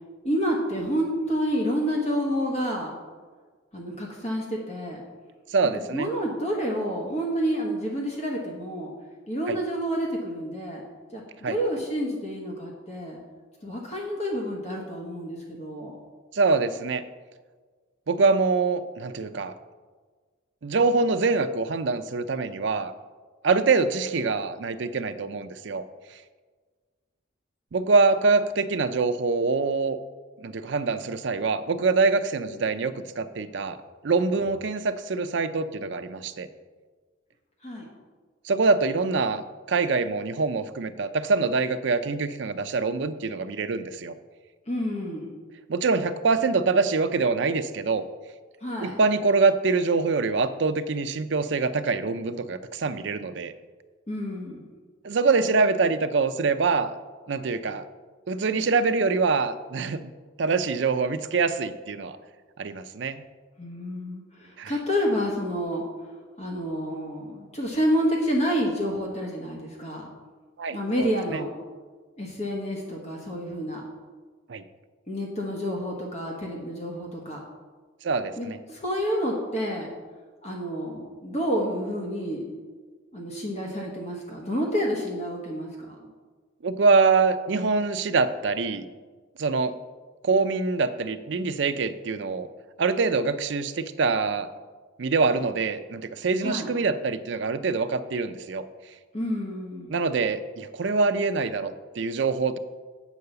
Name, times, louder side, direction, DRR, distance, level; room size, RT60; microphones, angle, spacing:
voice 1, 0.2-3.0 3.7-5.0 5.7-8.9 9.3-10.8 11.1-13.2 13.6-16.0 37.6-37.9 44.7-45.3 48.6-49.0 54.1-54.7 63.6-65.8 66.4-70.1 70.7-71.5 72.2-73.8 75.1-77.4 78.4-79.9 80.4-82.5 83.1-85.9 96.4-96.7 99.1-100.0, equal, 35° left, -2 dB, 1.2 m, -29 dB
voice 2, 5.5-6.1 9.5-9.6 11.4-11.6 16.3-17.0 18.1-19.5 20.6-22.9 23.4-25.8 27.7-30.0 30.4-33.8 34.0-36.5 38.4-44.1 45.7-48.0 48.8-53.5 55.0-56.9 57.3-57.8 58.3-60.1 60.4-62.2 62.6-63.2 64.6-64.7 70.6-71.4 74.5-74.6 78.0-78.6 86.6-88.9 89.4-89.8 90.2-92.5 92.8-94.5 95.0-98.6 99.9-102.6, right 4 dB, 65° right, 11 dB, 0.5 m, -24 dB
8.2 x 4.7 x 6.8 m, 1.4 s
head